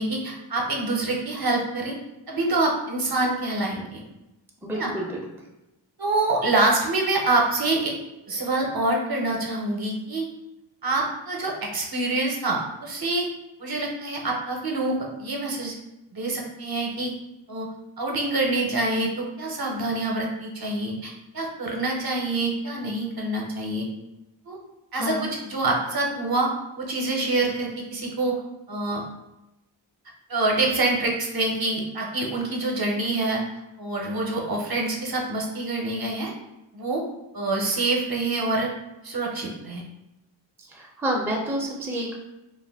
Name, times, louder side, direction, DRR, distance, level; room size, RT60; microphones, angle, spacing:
voice 1, 0.0-2.0 2.3-4.0 4.8-4.9 6.0-7.9 8.3-10.3 10.8-13.3 13.6-15.7 16.1-17.1 17.5-17.7 18.0-23.9 24.5-24.6 24.9-25.2 25.4-26.5 26.8-28.4 28.7-29.0 30.3-33.4 33.8-36.3 36.7-37.0 37.3-38.7 39.0-39.8, right 2 dB, 50° right, -1 dB, 0.7 m, -26 dB
voice 2, 4.6-5.4 24.9-25.2 40.6-42.2, equal, 5° right, -1 dB, 0.4 m, -29 dB
2.4 x 2.1 x 3.3 m, 0.95 s
wide cardioid pair, 60°, 47 cm